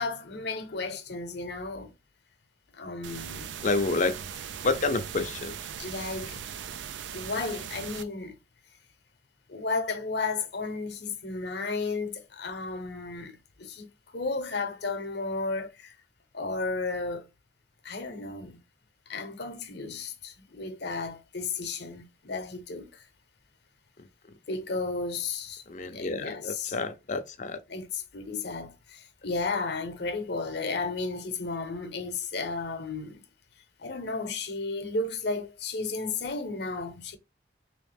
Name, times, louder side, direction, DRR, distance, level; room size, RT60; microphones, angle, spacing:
voice 1, 0.0-1.9 2.7-3.6 5.8-6.4 7.1-8.3 9.5-15.9 16.3-17.3 17.8-18.6 19.1-23.0 24.5-26.8 27.7-33.2 33.8-37.2, left 3 dB, 65° left, 0.8 m, -33 dB
sound 1, 3.0-8.0, right 8 dB, 75° right, 0.4 m, -39 dB
voice 2, 3.6-4.2 4.6-5.6 25.7-27.6, left 3 dB, 40° left, 0.6 m, -29 dB
3.4 x 3.1 x 3.4 m
head